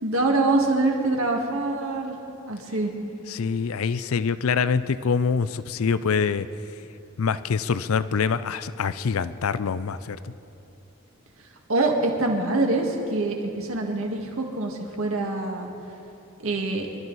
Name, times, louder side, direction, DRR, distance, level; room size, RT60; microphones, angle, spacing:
voice 1, 0.0-2.2 2.4-2.9 11.7-15.7 16.4-16.9, right 2 dB, 70° right, 1 dB, 1.9 m, -25 dB
voice 2, 3.3-6.5 7.2-10.3, left 5 dB, 75° left, 14 dB, 0.5 m, -25 dB
25.0 x 12.5 x 4.1 m, 2.9 s
head